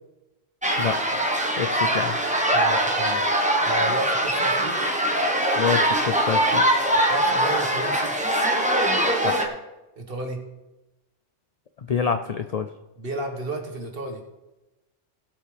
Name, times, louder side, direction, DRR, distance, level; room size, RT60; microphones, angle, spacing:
sound 1, 0.6-9.5, right 1 dB, 5° right, 1.1 m, -22 dB
voice 1, 1.6-2.2 5.6-6.7 9.2-9.4 11.8-12.7, left 7 dB, 75° left, 8 dB, 0.3 m, -27 dB
voice 2, 2.5-3.2 3.6-4.9 7.1-8.1 9.9-10.4 13.0-14.2, right 2 dB, 50° right, 1 dB, 1.8 m, -32 dB
17.0 x 8.2 x 3.4 m, 1.1 s
omnidirectional pair, 1.3 m